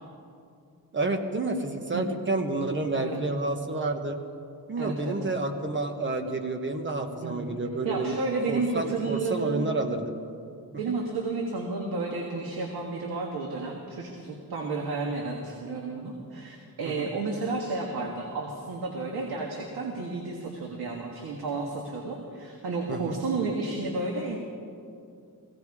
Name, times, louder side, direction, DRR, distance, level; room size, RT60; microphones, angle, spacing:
voice 1, 0.9-4.2 4.7-8.2 8.5-10.0 16.8-17.1 22.9-23.2, right 2 dB, 30° right, 6 dB, 1.1 m, -29 dB
voice 2, 4.8-5.4 7.2-7.5 7.8-9.7 10.7-24.4, right 3 dB, 80° right, 1 dB, 1.7 m, -32 dB
17.5 x 16.0 x 4.8 m, 2.5 s
wide cardioid pair, 165°, 37 cm